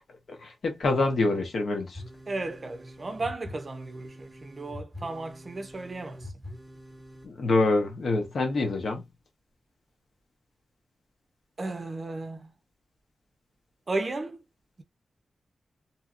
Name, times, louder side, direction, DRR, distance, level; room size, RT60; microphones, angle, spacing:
voice 1, 0.4-2.0 7.2-9.0, left 2 dB, 60° left, 1.0 m, -26 dB
sound 1, 1.9-7.3, left 1 dB, 10° left, 1.0 m, -45 dB
voice 2, 2.3-6.3 11.6-12.5 13.9-14.4, right 2 dB, 35° right, 0.5 m, -34 dB
2.7 x 2.7 x 2.3 m
wide cardioid pair, 160°, 0 cm